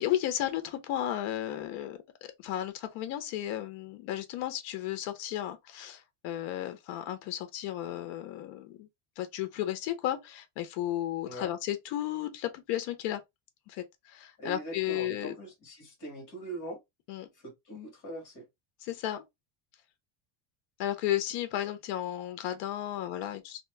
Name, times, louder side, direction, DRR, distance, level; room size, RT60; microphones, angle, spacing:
voice 1, 0.0-2.0 2.4-8.9 9.2-13.2 13.7-15.4 17.1-17.3 18.8-19.2 20.8-23.6, left 12 dB, 55° left, 0.7 m, -34 dB
voice 2, 14.4-16.8 17.4-18.5, right 1 dB, 40° left, 1.6 m, -41 dB
2.8 x 2.2 x 3.2 m
cardioid pair, 175°, 50 cm